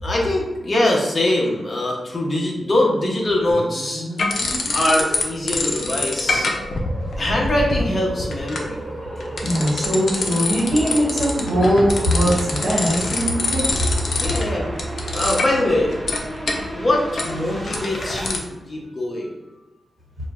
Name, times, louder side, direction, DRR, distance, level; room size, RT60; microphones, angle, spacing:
voice 1, 0.0-4.4 4.7-6.5 7.2-9.3 11.6-11.7 14.2-14.7 15.0-16.0 16.3-19.4, left 1 dB, 35° left, -2 dB, 0.8 m, -23 dB
sound 1, 3.5-18.3, right 1 dB, 20° right, 0.6 m, -34 dB
sound 2, 4.2-5.2 5.5-18.4, left 2 dB, 60° left, 0.5 m, -26 dB
voice 2, 9.4-13.7, equal, 60° right, -6 dB, 1.1 m, -20 dB
5.1 x 2.2 x 2.4 m, 1.1 s
wide cardioid pair, 140°, 0 cm